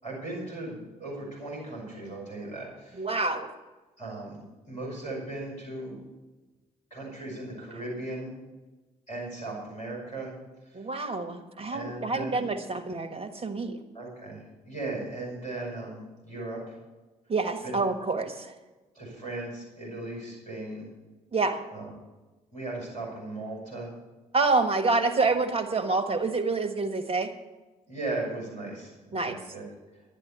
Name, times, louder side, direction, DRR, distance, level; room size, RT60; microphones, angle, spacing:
voice 1, 0.0-3.1 4.0-6.0 6.9-8.3 9.1-10.3 10.6-10.9 11.7-12.5 13.9-16.8 17.6-17.8 18.9-20.9 21.7-21.9 22.5-23.9 27.9-29.6, right 2 dB, 85° left, -5 dB, 5.6 m, -37 dB
voice 2, 3.0-3.5 10.7-13.8 17.3-18.5 21.3-21.6 24.3-27.3 29.1-29.4, right 3 dB, 30° right, 7 dB, 1.5 m, -27 dB
11.5 x 10.0 x 7.0 m, 1.2 s
figure-of-eight pair, 45°, 19 cm